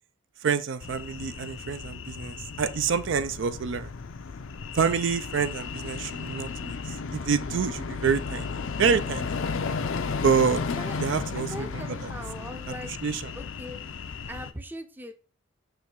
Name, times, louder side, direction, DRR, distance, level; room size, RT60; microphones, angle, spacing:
voice 1, 0.4-3.9 4.7-9.4 10.2-10.6 11.0-12.1 12.7-13.3, right 6 dB, 65° right, 0.4 m, -27 dB
sound 1, 0.8-14.5, left 5 dB, 75° left, 0.6 m, -34 dB
voice 2, 11.4-12.9 13.4-13.8 14.3-15.1, equal, 10° right, 0.5 m, -40 dB
6.8 x 3.1 x 4.5 m
head